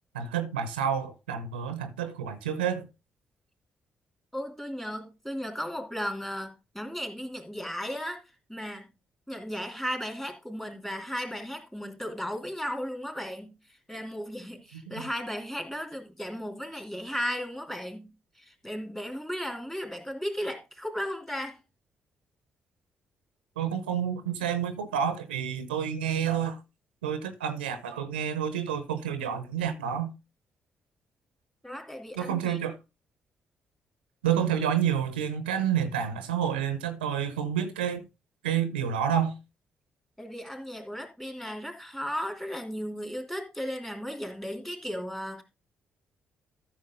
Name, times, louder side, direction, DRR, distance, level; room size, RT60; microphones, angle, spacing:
voice 1, 0.1-2.9 14.7-15.1 23.6-26.6 27.0-30.1 32.2-32.8 34.2-38.0 38.4-39.3, right 8 dB, 90° right, 0.8 m, -29 dB
voice 2, 4.3-8.2 8.5-8.9 9.3-13.6 13.9-18.1 18.4-21.6 31.6-32.6 40.2-45.4, equal, 10° left, 3.1 m, -35 dB
13.5 x 6.1 x 3.7 m
hypercardioid pair, 40°, 5 cm